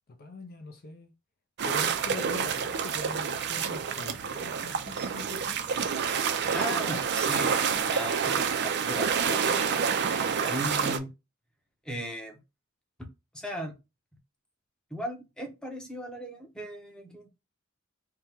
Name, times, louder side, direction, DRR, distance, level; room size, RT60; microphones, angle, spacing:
voice 1, 0.1-1.1 1.6-5.8 6.8-6.9, left 2 dB, 45° left, 0.6 m, -43 dB
sound 1, 1.6-11.0, right 6 dB, 55° right, 0.5 m, -28 dB
voice 2, 6.5-9.8 10.4-11.1 11.8-12.4 13.3-13.7 14.9-17.3, right 1 dB, 5° left, 0.8 m, -37 dB
3.5 x 2.2 x 4.4 m
head